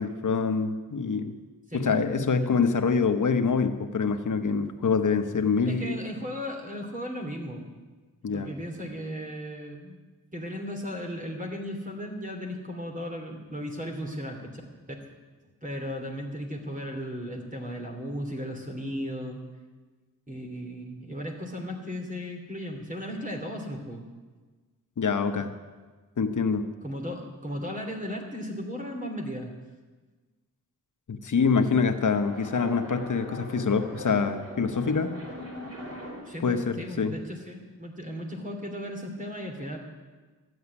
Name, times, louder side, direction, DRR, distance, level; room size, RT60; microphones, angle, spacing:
voice 1, 0.0-1.4 1.7-6.0 8.2-8.5 25.0-25.5 26.2-26.6 31.1-35.1 36.4-37.1, left 5 dB, 65° left, 8 dB, 1.1 m, -25 dB
voice 2, 5.6-7.7 8.3-10.0 10.3-14.6 14.9-15.0 15.6-19.4 20.3-24.1 26.8-29.5 36.2-39.8, equal, 25° right, 2 dB, 3.0 m, -36 dB
sound 1, 31.9-36.4, equal, 45° right, 4.1 m, -41 dB
13.5 x 8.0 x 9.7 m, 1.4 s
cardioid pair, 65°, 33 cm